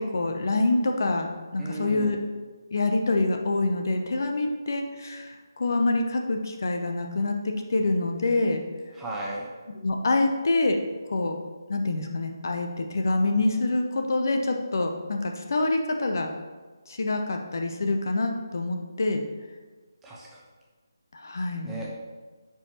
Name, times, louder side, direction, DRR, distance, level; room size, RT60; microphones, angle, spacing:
voice 1, 0.0-2.2 2.7-8.6 9.8-10.8 11.1-11.4 11.7-16.3 16.9-19.2 21.1-21.7, left 2 dB, 55° left, 4 dB, 0.7 m, -26 dB
voice 2, 1.6-2.2 8.9-9.5 20.0-20.4 21.6-21.9, right 2 dB, 5° right, -5 dB, 0.9 m, -35 dB
9.6 x 4.6 x 2.9 m, 1.3 s
figure-of-eight pair, 155°, 2 cm